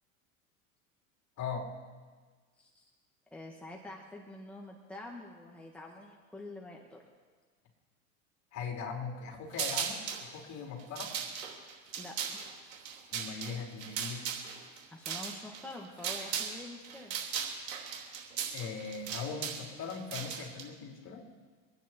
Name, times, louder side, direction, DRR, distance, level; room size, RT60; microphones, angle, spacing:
voice 1, 1.4-1.7 8.5-11.1 13.1-14.2 18.5-21.2, left 5 dB, 40° left, 0 dB, 4.2 m, -40 dB
voice 2, 3.3-7.0 12.0-12.4 14.9-17.1, left 2 dB, 5° left, -1 dB, 1.9 m, -46 dB
sound 1, 9.5-10.2 10.8-16.6 16.8-20.6, right 7 dB, 75° right, 3.3 m, -37 dB
25.5 x 9.6 x 4.6 m, 1.4 s
hypercardioid pair, 95°, 41 cm